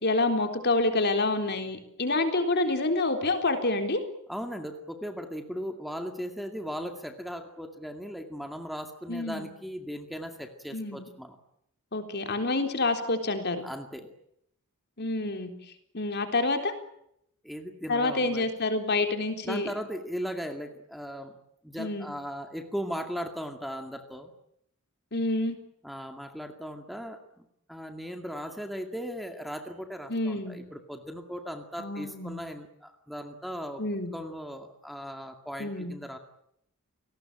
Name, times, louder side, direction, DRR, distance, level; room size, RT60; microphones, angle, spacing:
voice 1, 0.0-4.0 9.1-9.5 10.7-11.0 11.9-13.6 15.0-15.5 15.9-16.7 17.9-19.7 21.8-22.1 25.1-25.6 30.1-30.6 31.8-32.4 33.8-34.1 35.6-35.9, left 2 dB, 50° left, 6 dB, 3.8 m, -28 dB
voice 2, 4.3-11.4 13.6-14.1 17.4-18.5 19.4-21.3 21.6-24.3 25.8-33.8 34.1-36.2, equal, ahead, 5 dB, 2.2 m, -38 dB
29.0 x 19.0 x 8.9 m, 0.76 s
head